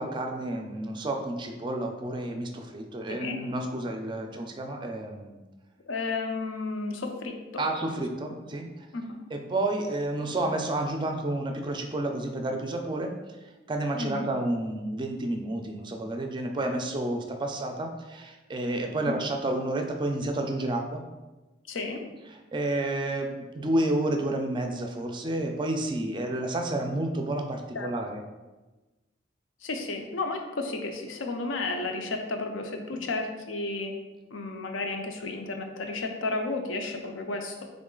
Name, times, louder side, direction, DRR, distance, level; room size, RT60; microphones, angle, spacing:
voice 1, 0.0-5.4 7.6-8.7 9.3-13.1 13.7-21.0 22.3-28.2, right 1 dB, 25° right, 4 dB, 0.4 m, -30 dB
voice 2, 3.1-3.4 5.8-7.6 8.9-9.2 14.0-14.3 19.1-19.2 21.7-22.0 27.7-27.9 29.6-33.9 34.3-37.6, left 3 dB, 85° left, 4 dB, 0.5 m, -32 dB
3.7 x 3.1 x 3.7 m, 1.2 s
head